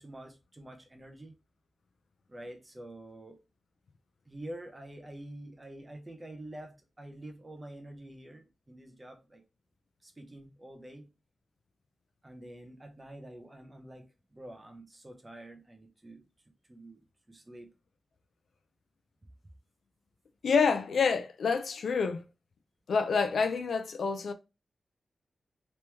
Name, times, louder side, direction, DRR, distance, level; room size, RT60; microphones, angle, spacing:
voice 1, 0.0-1.3 2.3-3.4 4.3-9.4 10.0-11.1 12.2-17.7, right 1 dB, 20° right, 0.7 m, -47 dB
voice 2, 20.4-22.2 22.9-24.3, left 5 dB, 85° left, 0.5 m, -27 dB
3.1 x 2.9 x 3.4 m
wide cardioid pair, 145°, 0 cm